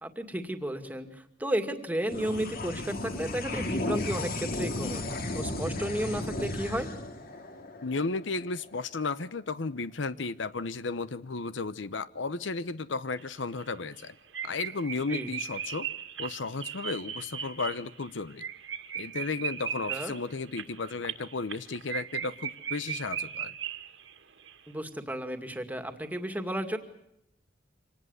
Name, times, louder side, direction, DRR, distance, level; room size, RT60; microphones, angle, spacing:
voice 1, 0.0-5.0 5.3-6.9 15.1-15.3 19.9-20.1 24.7-26.8, right 1 dB, 10° right, 7 dB, 2.2 m, -33 dB
sound 1, 2.0-8.8, left 2 dB, 50° left, 2.3 m, -35 dB
voice 2, 7.8-14.1 14.4-15.9 16.2-18.4 18.9-23.5, left 3 dB, 75° left, 15 dB, 0.9 m, -34 dB
sound 2, 13.2-13.3 13.6-13.7 14.0-14.1 14.3-24.2 24.4-24.5, right 8 dB, 75° right, 2.2 m, -37 dB
25.5 x 19.0 x 8.2 m, 0.78 s
head